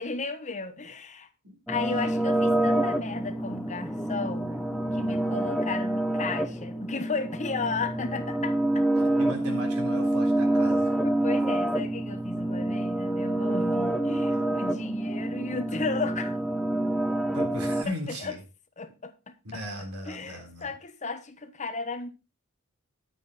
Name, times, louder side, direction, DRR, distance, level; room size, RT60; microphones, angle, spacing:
voice 1, 0.0-1.3 1.7-4.6 4.9-8.9 11.0-16.4 17.9-18.4 18.8-22.1, left 4 dB, 35° left, 1.1 m, -34 dB
sound 1, 1.7-17.8, right 1 dB, ahead, 0.8 m, -27 dB
voice 2, 9.0-10.9 14.3-14.4 17.3-18.4 19.4-20.7, equal, 85° right, 3.7 m, -38 dB
10.0 x 9.0 x 4.1 m
head